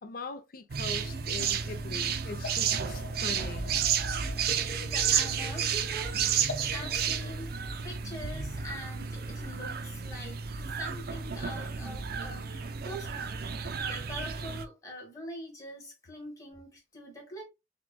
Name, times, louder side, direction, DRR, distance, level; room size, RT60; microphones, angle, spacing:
voice 1, 0.0-3.8, left 4 dB, 50° left, 0.6 m, -41 dB
sound 1, 0.7-7.4, left 3 dB, 65° left, 1.1 m, -45 dB
sound 2, 0.7-14.6, right 7 dB, 55° right, 0.5 m, -32 dB
voice 2, 4.5-7.6 7.8-17.4, equal, 20° left, 1.5 m, -44 dB
6.0 x 2.3 x 2.2 m
head